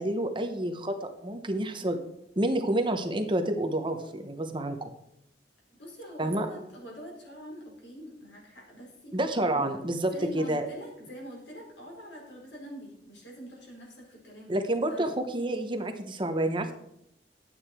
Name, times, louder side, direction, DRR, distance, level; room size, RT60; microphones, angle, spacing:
voice 1, 0.0-2.0 2.4-4.9 6.2-6.5 9.1-10.7 14.5-16.7, right 1 dB, 25° right, 6 dB, 0.9 m, -29 dB
voice 2, 5.8-9.2 10.1-14.5 14.9-15.1, equal, 80° left, -2 dB, 4.5 m, -44 dB
11.0 x 8.8 x 4.4 m, 0.77 s
head